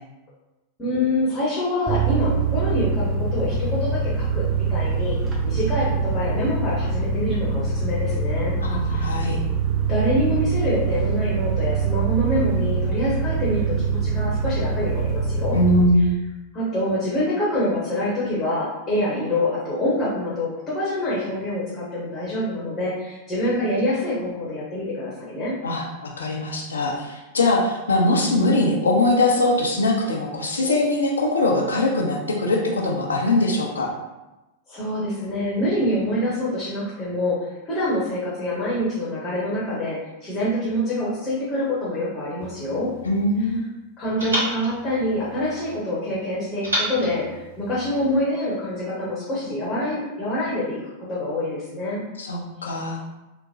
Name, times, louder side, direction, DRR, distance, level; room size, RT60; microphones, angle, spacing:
voice 1, 0.8-4.4 4.7-5.2 5.4-8.6 8.9-9.1 9.9-15.6 16.5-25.5 34.7-42.9 44.0-50.8 51.1-52.0, left 1 dB, 20° left, -8 dB, 0.9 m, -26 dB
sound 1, 1.9-15.8, right 4 dB, 20° right, 0.6 m, -24 dB
voice 2, 8.6-9.4 15.5-16.1 25.6-33.9 43.0-43.6 52.2-53.0, left 1 dB, 70° left, -1 dB, 0.5 m, -21 dB
sound 2, 42.4-43.6 44.2-45.8 46.6-48.2, equal, 70° right, 1.2 m, -31 dB
3.0 x 2.1 x 2.7 m, 1.0 s
figure-of-eight pair, 90°, 0 cm